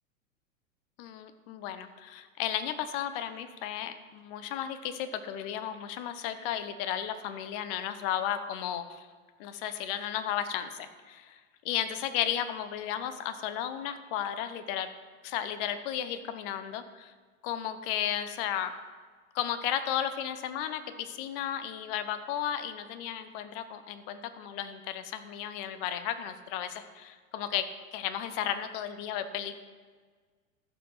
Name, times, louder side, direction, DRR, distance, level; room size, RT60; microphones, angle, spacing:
voice 1, 1.0-9.1 9.4-11.4 11.6-14.9 15.2-17.1 17.4-18.7 19.3-27.6 27.9-29.6, left 10 dB, 40° left, 11 dB, 0.8 m, -34 dB
15.0 x 5.9 x 4.7 m, 1.5 s
figure-of-eight pair, 95°, 42 cm